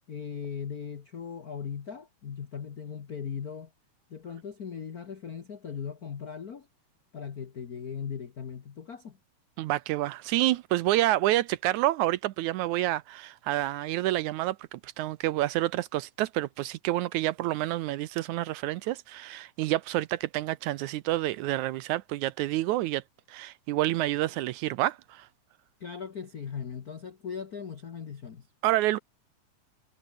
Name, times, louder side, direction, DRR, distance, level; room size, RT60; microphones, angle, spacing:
voice 1, 0.1-3.7 4.1-6.7 7.1-9.2 25.8-28.5, left 7 dB, 80° left, 0.8 m, -38 dB
voice 2, 9.6-23.0 23.3-25.3 28.6-29.0, right 16 dB, 80° right, 1.9 m, -28 dB
omnidirectional pair, 3.7 m